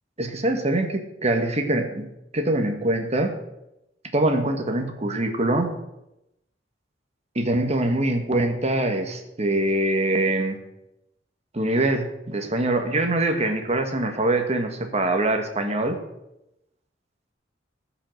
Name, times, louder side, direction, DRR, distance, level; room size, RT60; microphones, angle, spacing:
voice 1, 0.2-2.1 2.3-3.4 4.1-5.8 7.3-10.6 11.5-16.0, right 1 dB, 35° right, 5 dB, 1.5 m, -23 dB
13.5 x 5.7 x 7.9 m, 0.88 s
head